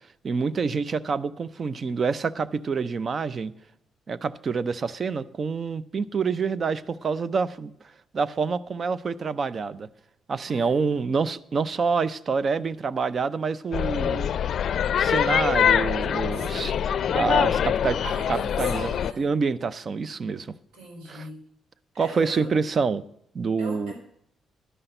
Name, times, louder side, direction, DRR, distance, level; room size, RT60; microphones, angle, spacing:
voice 1, 0.2-3.5 4.1-7.7 8.1-9.9 10.3-14.3 15.0-16.7 17.1-18.0 18.3-18.9 19.2-20.5 21.1-21.2 22.0-23.0 23.3-23.9, right 5 dB, 45° right, 0.5 m, -27 dB
voice 2, 10.5-11.0 16.3-17.0 18.0-19.3 20.7-21.4 21.9-22.5 23.6-23.9, right 2 dB, 90° right, 3.8 m, -40 dB
sound 1, 13.7-19.1, left 9 dB, 60° left, 0.4 m, -24 dB
11.0 x 5.7 x 7.9 m
cardioid pair, 90°, 0 cm